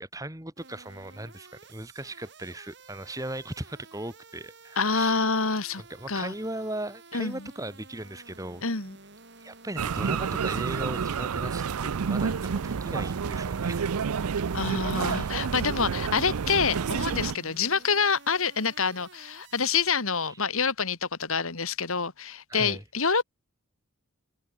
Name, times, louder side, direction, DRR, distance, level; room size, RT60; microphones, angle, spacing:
voice 1, 0.0-5.3 5.9-8.6 9.4-13.8 14.4-15.5 22.5-22.8, right 1 dB, 15° right, 3.3 m, -38 dB
sound 1, 0.6-19.9, right 3 dB, 50° right, 5.1 m, -52 dB
voice 2, 4.8-5.8 6.1-6.3 7.1-7.4 8.6-9.0 14.5-23.2, left 5 dB, 70° left, 2.4 m, -27 dB
sound 2, 9.8-17.3, right 6 dB, 85° right, 0.5 m, -29 dB
head